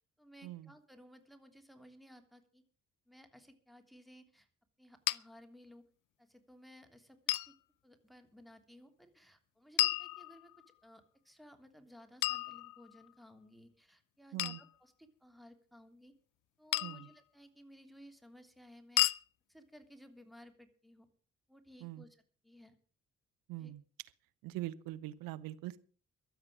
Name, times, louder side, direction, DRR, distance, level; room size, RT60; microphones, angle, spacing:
voice 1, 0.2-2.6 3.1-4.5 4.8-5.8 6.2-7.5 7.8-10.5 10.8-16.1 16.6-19.0 19.5-21.1 21.5-22.7 23.6-23.7, equal, ahead, 7 dB, 3.1 m, -58 dB
sound 1, 5.1-5.2 7.3-7.5 9.8-10.7 12.2-13.1 14.4-14.7 16.7-17.1 19.0-19.2, left 18 dB, 55° left, 0.6 m, -33 dB
voice 2, 23.5-23.8 24.4-25.8, right 16 dB, 60° right, 15 dB, 1.1 m, -42 dB
23.0 x 8.2 x 5.0 m, 0.42 s
figure-of-eight pair, 45°, 38 cm